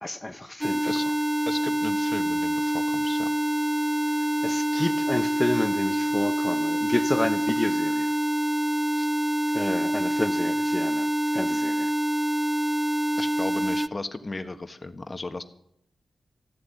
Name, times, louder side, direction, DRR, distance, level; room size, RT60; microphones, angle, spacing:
voice 1, 0.0-0.9 4.4-8.1 9.5-11.9, left 1 dB, 20° left, 1.1 m, -30 dB
sound 1, 0.6-13.9, right 1 dB, 5° right, 0.4 m, -26 dB
voice 2, 1.4-3.3 8.9-9.1 13.2-15.4, left 2 dB, 40° left, 1.5 m, -35 dB
14.5 x 7.9 x 9.3 m
supercardioid pair, 40°, 0 cm